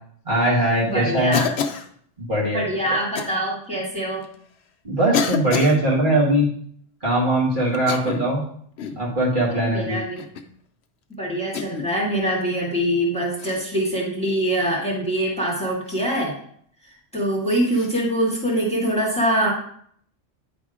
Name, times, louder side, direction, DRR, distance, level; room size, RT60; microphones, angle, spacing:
voice 1, 0.3-1.4 2.2-3.0 4.8-6.5 7.0-8.4 9.0-10.0, right 1 dB, 40° right, -5 dB, 2.0 m, -21 dB
voice 2, 0.8-1.5 2.5-4.3 9.5-10.2 11.2-16.3 16.9-19.5, right 1 dB, 5° left, -4 dB, 2.0 m, -24 dB
Cough, 1.3-1.9 3.1-3.3 4.2-4.3 5.1-5.8 7.7-8.4 8.8-9.1 10.2-10.5 11.5-11.9 13.4-13.6 15.9-16.0 17.7-17.9, left 6 dB, 65° left, 0.9 m, -27 dB
9.8 x 3.5 x 4.9 m, 0.62 s
omnidirectional pair, 1.3 m